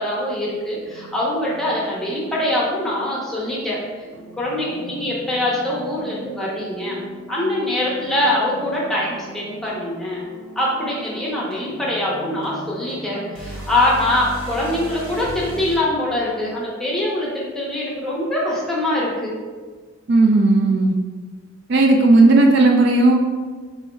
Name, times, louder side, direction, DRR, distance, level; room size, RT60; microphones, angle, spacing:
voice 1, 0.0-4.0 4.4-7.0 7.3-10.2 10.6-19.3, left 1 dB, ahead, -6 dB, 0.6 m, -23 dB
sound 1, 0.8-15.8, right 1 dB, 85° right, 1.2 m, -38 dB
voice 2, 20.1-20.9 21.7-23.1, right 2 dB, 55° right, 1 dB, 0.3 m, -14 dB
3.5 x 2.1 x 4.3 m, 1.5 s
head